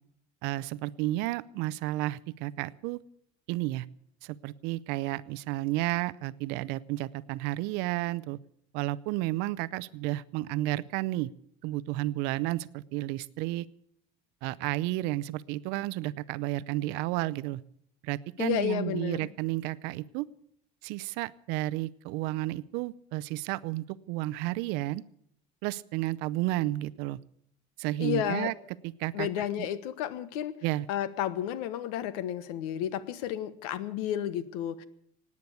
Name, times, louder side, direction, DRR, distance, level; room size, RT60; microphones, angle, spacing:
voice 1, 0.4-3.0 3.5-3.9 4.2-8.4 8.7-11.3 11.6-13.7 14.4-17.6 18.0-20.3 20.8-25.0 25.6-27.2 27.8-28.5 28.8-29.3 30.6-30.9, right 17 dB, 60° right, 18 dB, 0.6 m, -32 dB
voice 2, 18.4-19.3 28.0-28.5 29.1-30.5 30.9-34.8, left 11 dB, 80° left, 15 dB, 1.3 m, -32 dB
17.5 x 9.6 x 8.3 m, 0.69 s
cardioid pair, 155°, 19 cm